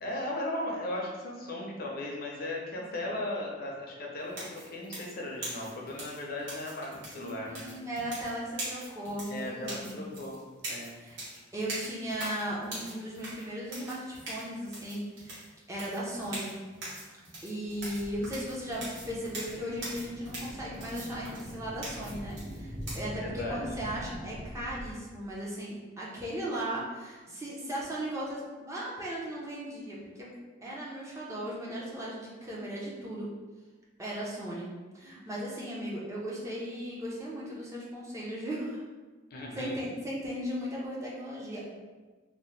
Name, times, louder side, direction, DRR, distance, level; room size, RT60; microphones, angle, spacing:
voice 1, 0.0-7.7 9.3-10.9 23.2-23.6 39.3-39.9, left 1 dB, 55° left, -2 dB, 0.5 m, -37 dB
sound 1, 4.3-23.0, right 1 dB, 85° right, 1.1 m, -42 dB
voice 2, 7.1-10.0 11.0-11.2 11.5-16.5 17.4-30.3 30.6-33.3 34.0-38.8 39.5-41.7, equal, 15° right, -5 dB, 0.5 m, -37 dB
sound 2, 17.7-24.9, equal, 60° right, 1.2 m, -43 dB
2.7 x 2.0 x 3.1 m, 1.3 s
head